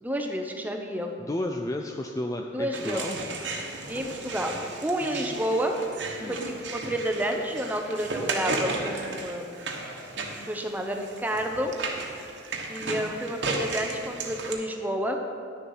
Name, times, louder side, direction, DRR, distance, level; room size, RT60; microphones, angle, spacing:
voice 1, 0.0-1.1 2.5-3.0 3.9-4.6 4.8-5.7 6.3-9.5 10.2-11.7 12.7-15.2, right 1 dB, 10° right, 3 dB, 0.7 m, -30 dB
voice 2, 1.2-3.2 6.2-6.4, left 1 dB, 15° left, 3 dB, 0.3 m, -32 dB
sound 1, 2.7-14.5, right 3 dB, 65° right, 1.2 m, -35 dB
Cough, 5.9-6.5 6.9-7.5 8.6-10.2, equal, 70° left, 1.8 m, -45 dB
11.0 x 6.8 x 5.6 m, 2.6 s
head